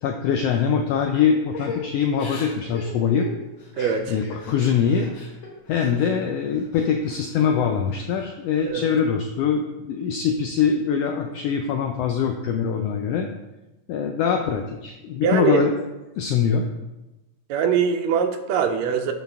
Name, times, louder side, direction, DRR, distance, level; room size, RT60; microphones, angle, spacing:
voice 1, 0.0-3.3 4.1-5.1 5.7-13.3 13.9-15.7 16.2-16.7, left 7 dB, 85° left, 4 dB, 1.4 m, -23 dB
Crying sobbing / Breathing, 1.5-6.1 6.5-7.5 7.9-8.6, left 4 dB, 50° left, 1.7 m, -38 dB
voice 2, 3.8-4.1 8.6-8.9 15.2-15.6 17.5-19.1, right 7 dB, 80° right, 6 dB, 1.8 m, -22 dB
10.5 x 4.0 x 3.5 m, 1.0 s
omnidirectional pair, 3.3 m